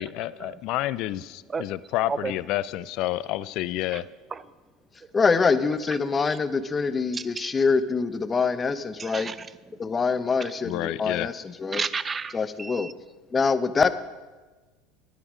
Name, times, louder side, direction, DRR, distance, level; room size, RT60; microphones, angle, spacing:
voice 1, 0.0-4.1 10.6-11.3, left 15 dB, 60° left, 17 dB, 0.3 m, -29 dB
voice 2, 5.1-9.3 9.8-11.3 11.6-11.8 12.3-12.9 13.3-13.9, left 5 dB, 25° left, 13 dB, 0.7 m, -24 dB
voice 3, 7.1-7.5 9.0-9.7 10.4-10.5 11.7-12.9, right 5 dB, 25° right, 16 dB, 0.5 m, -33 dB
10.0 x 9.8 x 5.0 m, 1.2 s
supercardioid pair, 95°, 0 cm